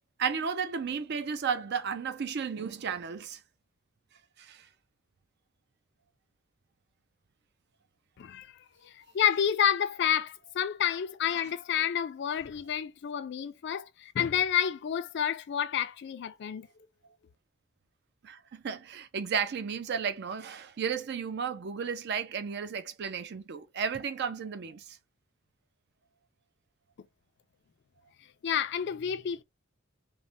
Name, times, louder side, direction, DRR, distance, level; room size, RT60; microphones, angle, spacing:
voice 1, 0.2-3.4 4.4-4.7 18.2-25.0, right 6 dB, 55° right, 0.4 m, -33 dB
voice 2, 8.8-16.7 28.4-29.4, left 8 dB, 60° left, 0.4 m, -29 dB
3.2 x 2.1 x 2.6 m
head